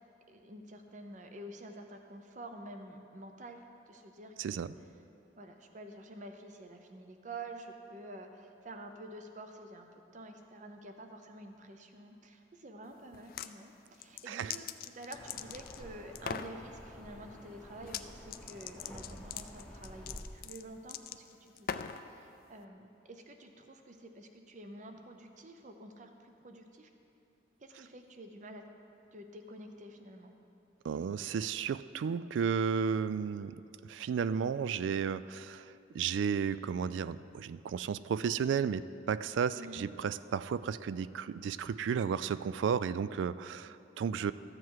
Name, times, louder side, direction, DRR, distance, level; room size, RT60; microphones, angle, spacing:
voice 1, 0.3-4.7 5.4-9.9 10.1-21.2 21.6-26.9 27.6-28.6 29.1-30.3 39.6-39.8, right 1 dB, 40° right, 5 dB, 0.7 m, -49 dB
voice 2, 4.4-4.7 14.3-14.5 30.8-44.3, right 6 dB, 80° right, 15 dB, 0.3 m, -33 dB
sound 1, 13.1-13.5 13.9-15.8 16.1-16.5 17.8-18.0 18.3-22.0, left 8 dB, 50° left, 0.3 m, -41 dB
sound 2, 15.1-20.2, left 1 dB, 5° left, 0.8 m, -50 dB
13.5 x 7.6 x 4.7 m, 2.7 s
head